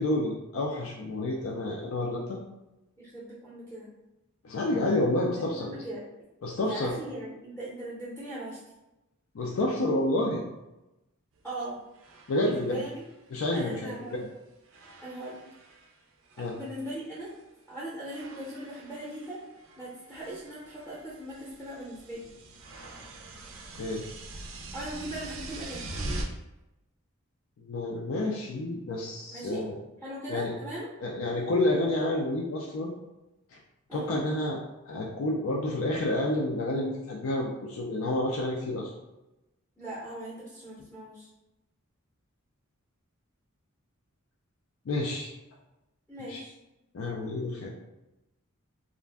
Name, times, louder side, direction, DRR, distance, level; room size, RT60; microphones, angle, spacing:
voice 1, 0.0-2.4 4.4-5.7 6.4-6.9 9.3-10.4 12.3-12.8 13.3-14.3 16.4-16.6 23.8-24.0 27.6-29.7 30.3-30.5 31.0-32.9 33.5-33.6 33.9-34.6 34.9-38.9 44.9-45.3 46.3-46.4 46.9-47.7, left 1 dB, 65° left, -2 dB, 0.4 m, -29 dB
voice 2, 3.0-3.9 5.2-6.0 6.6-8.6 11.4-11.8 12.4-12.9 13.5-14.2 15.0-15.4 16.6-17.3 17.7-19.4 19.8-22.3 24.7-25.9 29.3-29.6 30.0-30.9 33.9-34.2 39.8-41.3 46.1-46.5, right 1 dB, 5° left, -8 dB, 0.6 m, -39 dB
sound 1, 11.4-11.5 11.9-14.4 14.6-15.9 16.2-17.4 18.1-26.2, right 2 dB, 60° right, 0.4 m, -43 dB
2.5 x 2.1 x 3.3 m, 0.95 s
head